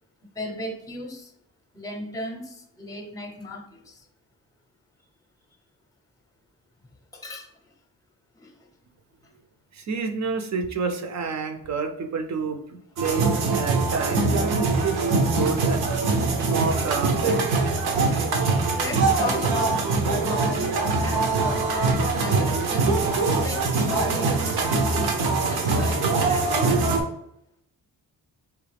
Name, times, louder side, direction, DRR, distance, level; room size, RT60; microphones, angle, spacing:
voice 1, 0.3-1.3 1.7-4.0 7.1-7.5 8.3-8.5 18.7-19.9 20.2-22.9 23.4-25.2 25.4-26.7, left 1 dB, 10° left, 4 dB, 0.7 m, -36 dB
voice 2, 9.7-15.9 16.4-17.5, right 5 dB, 50° right, 6 dB, 0.6 m, -29 dB
sound 1, 13.0-27.0, right 3 dB, 90° right, 0.9 m, -23 dB
4.8 x 3.0 x 3.4 m, 0.76 s
wide cardioid pair, 145°, 37 cm